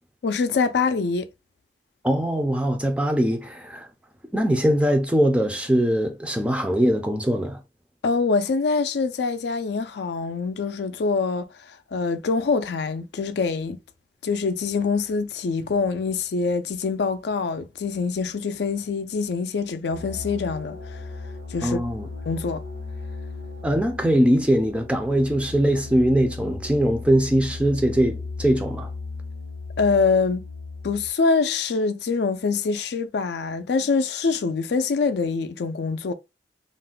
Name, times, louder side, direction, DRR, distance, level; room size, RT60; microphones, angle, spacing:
voice 1, 0.2-1.3 8.0-13.8 14.2-21.0 21.5-21.8 22.3-22.6 29.8-30.4 30.8-36.1, left 4 dB, 70° left, 0.4 m, -24 dB
voice 2, 2.0-3.9 4.3-7.6 21.6-22.1 23.6-28.9, equal, 5° right, 0.4 m, -21 dB
sound 1, 19.9-31.1, left 3 dB, 80° right, 1.0 m, -36 dB
2.5 x 2.1 x 3.7 m
head